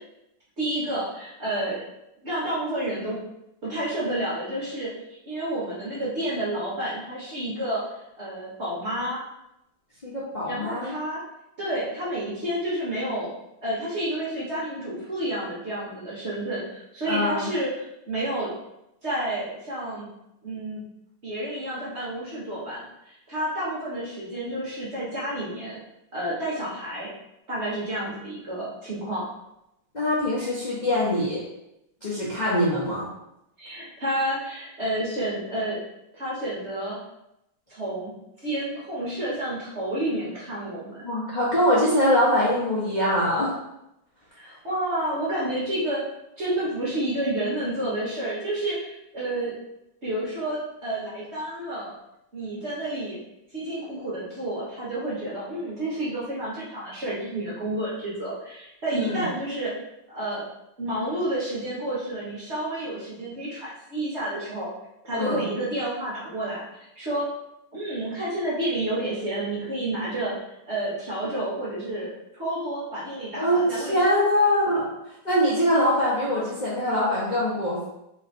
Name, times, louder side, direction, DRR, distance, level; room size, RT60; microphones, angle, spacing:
voice 1, 0.6-1.9 2.2-3.2 3.6-4.9 5.3-9.2 10.4-11.2 11.6-13.3 13.6-18.5 19.0-20.1 20.4-20.8 21.2-25.8 26.1-27.1 27.5-29.3 33.6-35.8 36.1-37.0 37.7-38.1 38.4-41.0 44.4-46.0 46.4-49.6 50.0-51.9 52.3-53.2 53.5-59.7 60.1-60.4 60.8-64.7 65.0-66.6 66.9-67.3 67.7-70.3 70.7-74.2, right 1 dB, 40° right, -7 dB, 1.0 m, -30 dB
voice 2, 10.0-10.9 17.1-17.5 29.9-31.4 32.0-33.1 41.0-43.5 58.9-59.3 65.1-65.4 73.4-74.9 75.2-77.9, equal, 45° left, -8 dB, 0.5 m, -23 dB
3.2 x 3.1 x 4.2 m, 0.85 s
omnidirectional pair, 2.3 m